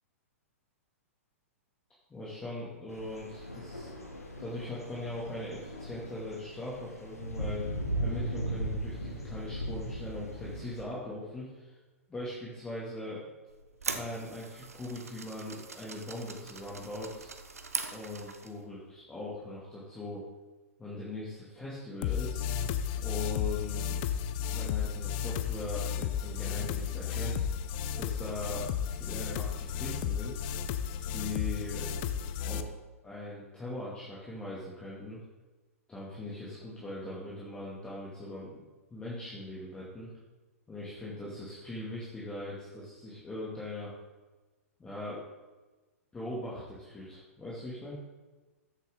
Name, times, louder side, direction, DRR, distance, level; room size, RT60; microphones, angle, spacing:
voice 1, 2.1-3.9 4.4-7.7 8.0-11.8 12.1-13.2 13.9-17.3 17.9-20.3 20.8-22.4 23.0-24.0 24.5-27.5 28.0-30.4 31.1-31.9 32.4-32.7 33.0-35.2 35.9-38.6 38.9-40.1 40.7-43.9 44.8-45.2 46.1-48.0, left 2 dB, 10° left, -7 dB, 2.3 m, -40 dB
sound 1, 2.9-10.8, equal, 85° left, 2.0 m, -37 dB
sound 2, 13.5-18.6, right 4 dB, 75° right, 1.0 m, -41 dB
sound 3, 22.0-32.6, left 8 dB, 40° left, 0.6 m, -33 dB
14.0 x 7.3 x 3.8 m, 1.2 s
figure-of-eight pair, 105°, 8 cm